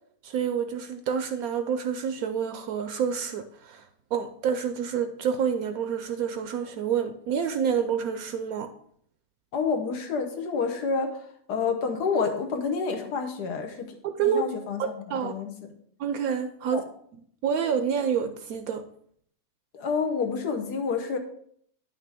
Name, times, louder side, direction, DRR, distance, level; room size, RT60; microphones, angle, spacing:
voice 1, 0.2-3.9 4.1-8.7 14.0-14.4 14.8-15.3 16.0-16.8 17.1-18.8, right 7 dB, 70° right, 9 dB, 1.0 m, -28 dB
voice 2, 9.5-13.9 14.2-15.7 16.7-16.8 19.7-21.2, left 5 dB, 80° left, 5 dB, 1.5 m, -29 dB
9.7 x 5.8 x 3.5 m, 0.64 s
omnidirectional pair, 1.7 m